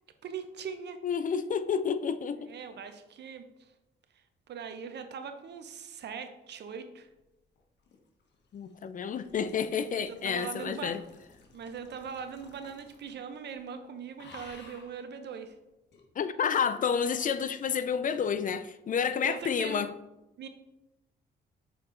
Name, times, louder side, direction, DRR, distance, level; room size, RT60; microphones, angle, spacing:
voice 1, 0.2-1.0 2.5-3.7 4.5-7.1 10.0-10.9 11.5-15.6 19.2-19.8 20.4-20.5, right 6 dB, 60° right, 0.8 m, -41 dB
voice 2, 1.0-2.5 8.5-11.0 16.2-19.9, left 7 dB, 40° left, 0.4 m, -30 dB
sound 1, 7.6-13.3 13.6-13.8 14.2-15.0 15.9-16.1, left 3 dB, 60° left, 1.3 m, -55 dB
6.7 x 4.2 x 3.8 m
cardioid pair, 90°, 20 cm